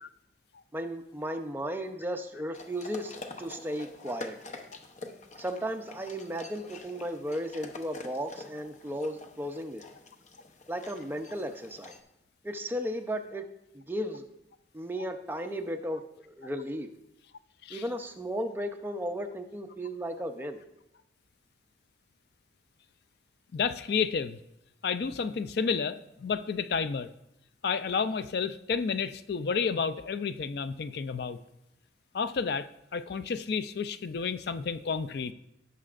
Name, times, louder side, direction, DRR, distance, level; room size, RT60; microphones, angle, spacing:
voice 1, 0.7-4.4 5.4-9.8 10.7-11.9 12.4-13.4 13.7-14.2 14.7-16.0 16.4-16.9 17.7-20.6, equal, 10° right, 5 dB, 0.6 m, -35 dB
sound 1, 2.5-12.0, left 3 dB, 40° left, 0.8 m, -46 dB
voice 2, 23.5-24.4 24.8-27.1 27.6-31.4 32.1-32.7 32.9-35.3, left 5 dB, 60° left, 12 dB, 0.4 m, -31 dB
17.0 x 6.7 x 2.5 m, 0.84 s
head